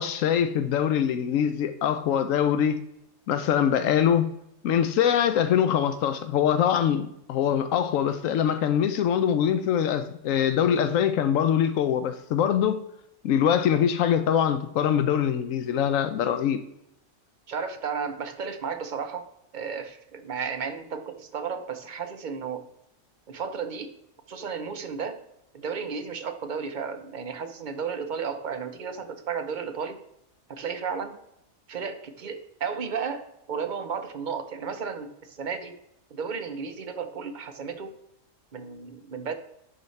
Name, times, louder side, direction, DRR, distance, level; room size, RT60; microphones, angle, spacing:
voice 1, 0.0-2.8 3.3-4.3 4.6-12.8 13.2-16.6, left 9 dB, 80° left, 1.0 m, -23 dB
voice 2, 17.5-19.3 19.5-22.6 23.3-23.9 24.3-25.2 25.5-30.0 30.5-31.2 31.7-35.8 36.1-38.0 38.5-39.3, right 6 dB, 45° right, 0.7 m, -33 dB
11.0 x 4.0 x 3.2 m
omnidirectional pair, 1.4 m